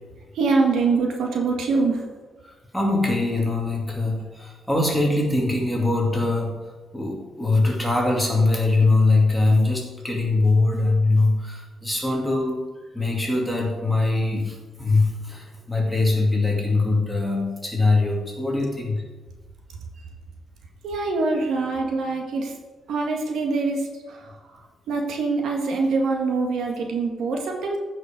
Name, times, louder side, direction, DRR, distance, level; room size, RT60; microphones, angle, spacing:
voice 1, 0.3-2.0 20.8-22.5 22.9-24.4 24.9-27.8, right 3 dB, 80° right, 1 dB, 1.8 m, -24 dB
voice 2, 2.7-6.6 6.9-12.6 12.9-19.0, left 2 dB, ahead, -2 dB, 2.4 m, -22 dB
15.5 x 5.6 x 5.2 m, 1.3 s
cardioid pair, 150°, 0 cm